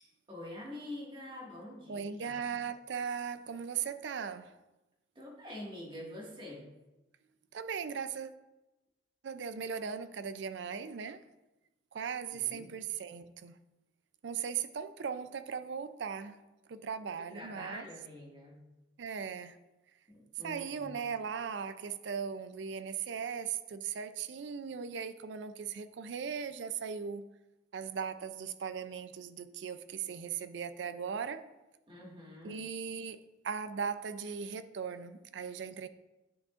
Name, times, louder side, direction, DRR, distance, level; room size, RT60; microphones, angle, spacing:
voice 1, 0.3-2.5 5.2-6.7 12.3-12.7 17.2-18.7 20.1-20.9 31.9-32.6, left 1 dB, 30° right, 1.8 m, -46 dB
voice 2, 1.9-4.5 7.5-8.3 9.2-11.2 11.9-13.6 14.2-16.4 16.7-17.9 19.0-19.6 20.4-27.3 27.7-31.4 32.4-35.9, right 6 dB, 75° right, 0.4 m, -38 dB
10.0 x 6.1 x 2.5 m
head